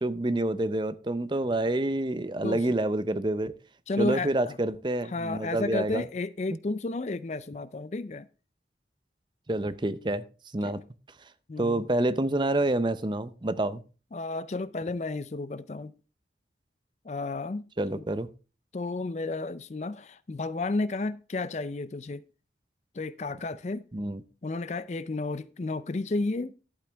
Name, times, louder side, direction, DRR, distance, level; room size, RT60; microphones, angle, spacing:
voice 1, 0.0-3.6 4.0-6.1 9.5-10.2 10.5-10.8 11.6-13.8 17.8-18.3 23.9-24.2, right 1 dB, 25° right, 0.6 m, -28 dB
voice 2, 3.9-4.5 5.1-8.3 10.6-10.8 11.5-11.8 14.1-15.9 17.0-17.6 17.9-18.0 18.7-22.2 22.9-23.9 24.4-26.5, left 3 dB, 40° left, 0.4 m, -32 dB
11.5 x 8.5 x 3.4 m
head